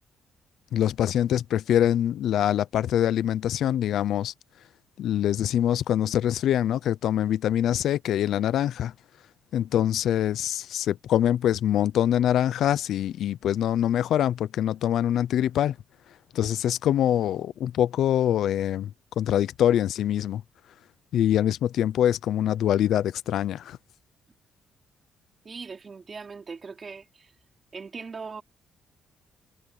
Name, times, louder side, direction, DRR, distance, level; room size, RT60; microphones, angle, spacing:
voice 1, 0.7-4.3 5.0-8.9 9.5-15.8 16.3-20.4 21.1-23.8, left 11 dB, 75° left, 0.7 m, -24 dB
voice 2, 25.4-27.3 27.7-28.4, right 5 dB, 35° right, 3.3 m, -40 dB
cardioid pair, 90°, 0 cm